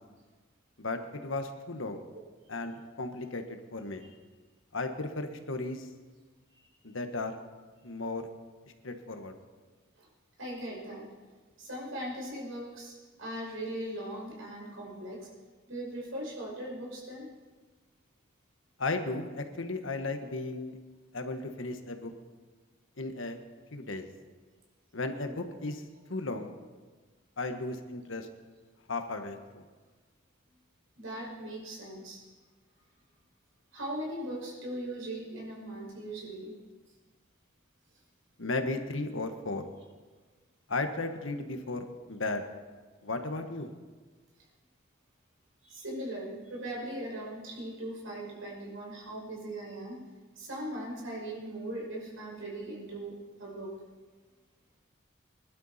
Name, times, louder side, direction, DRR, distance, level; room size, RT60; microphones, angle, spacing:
voice 1, 0.8-2.0 2.5-4.1 4.7-5.9 6.8-7.4 7.8-8.3 8.8-9.3 18.8-20.8 21.1-22.1 23.0-23.4 23.7-24.1 24.9-25.8 26.1-26.5 27.4-28.3 28.9-29.6 38.4-39.7 40.7-42.4 43.0-43.7, left 2 dB, 75° left, 6 dB, 1.3 m, -35 dB
voice 2, 10.4-11.1 11.6-15.3 15.7-17.3 31.0-32.2 33.7-36.5 45.6-50.1 50.4-53.7, right 1 dB, 85° right, -2 dB, 5.5 m, -39 dB
22.0 x 12.0 x 4.2 m, 1.4 s
head